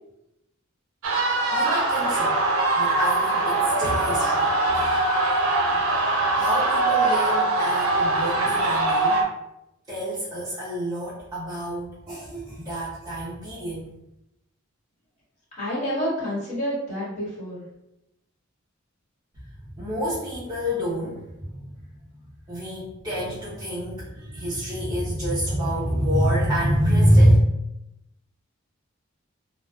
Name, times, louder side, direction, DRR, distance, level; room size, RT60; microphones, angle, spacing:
sound 1, 1.0-9.2, right 2 dB, 85° right, 0.5 m, -22 dB
voice 1, 1.5-2.4 2.8-4.9 6.3-9.3 9.9-13.9 19.8-21.7 22.5-27.4, equal, 20° right, -10 dB, 0.6 m, -26 dB
voice 2, 15.6-17.6, equal, 35° left, -9 dB, 1.4 m, -28 dB
2.4 x 2.3 x 2.3 m, 0.86 s
head